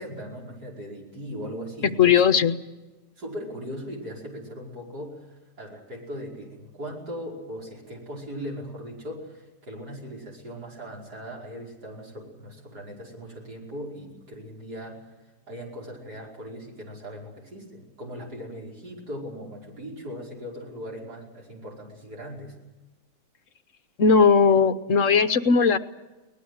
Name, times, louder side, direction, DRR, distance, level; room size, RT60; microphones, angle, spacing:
voice 1, 0.0-2.4 3.2-15.0 15.5-22.5, equal, 80° right, -2 dB, 6.0 m, -39 dB
voice 2, 2.0-2.5 24.0-25.8, left 5 dB, 55° left, 11 dB, 1.2 m, -18 dB
23.0 x 19.5 x 8.0 m, 1.1 s
omnidirectional pair, 1.7 m